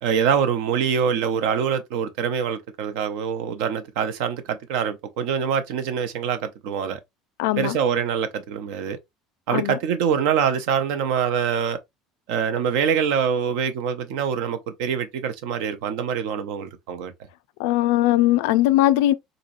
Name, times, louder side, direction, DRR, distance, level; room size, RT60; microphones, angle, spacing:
voice 1, 0.0-7.0 7.6-9.0 9.5-11.8 12.3-17.1, right 7 dB, 80° right, 0.8 m, -24 dB
voice 2, 7.4-7.8 9.5-9.8 17.6-19.1, left 15 dB, 85° left, 0.4 m, -19 dB
3.9 x 2.9 x 2.5 m
supercardioid pair, 120°, 0 cm